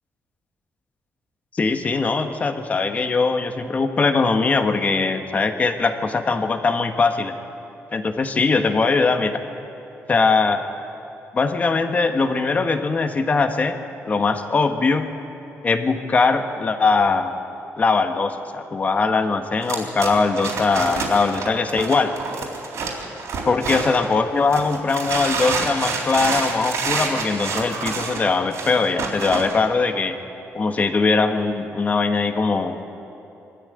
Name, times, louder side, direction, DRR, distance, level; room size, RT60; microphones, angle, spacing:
voice 1, 1.5-7.3 7.9-9.4 10.1-10.6 11.3-13.8 14.1-15.1 15.6-17.4 17.8-22.1 23.4-30.1 30.5-32.8, left 4 dB, 30° left, 7 dB, 1.3 m, -21 dB
sound 1, 19.6-24.1 24.5-29.6, right 4 dB, 70° right, 3.7 m, -28 dB
23.0 x 13.0 x 8.9 m, 3.0 s
cardioid pair, 150°, 5 cm